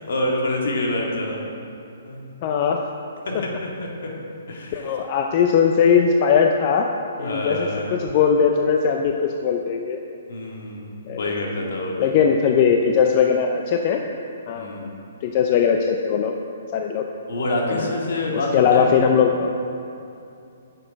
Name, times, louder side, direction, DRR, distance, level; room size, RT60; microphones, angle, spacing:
voice 1, 0.1-1.4 2.0-2.3 3.2-4.1 4.5-4.9 7.2-8.0 10.3-12.1 14.5-14.9 17.3-19.0, left 1 dB, 70° left, -1 dB, 2.0 m, -27 dB
voice 2, 2.4-2.8 4.7-6.9 7.2-10.0 11.1-11.2 12.0-14.0 14.5-14.9 15.2-16.3 16.7-17.0 17.7-17.9 18.3-19.5, left 7 dB, 35° left, 3 dB, 0.5 m, -19 dB
9.6 x 6.7 x 5.2 m, 2.6 s
hypercardioid pair, 155°, 0 cm